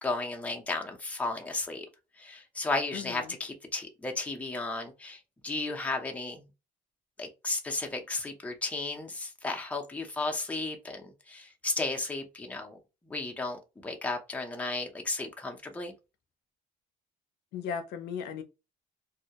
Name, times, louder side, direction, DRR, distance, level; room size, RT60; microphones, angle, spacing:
voice 1, 0.0-1.9 2.2-6.4 7.2-12.8 13.0-15.9, left 3 dB, 10° left, 0.6 m, -34 dB
voice 2, 2.9-3.3 17.5-18.4, left 7 dB, 80° left, 0.5 m, -36 dB
2.2 x 2.0 x 2.8 m
cardioid pair, 110°, 17 cm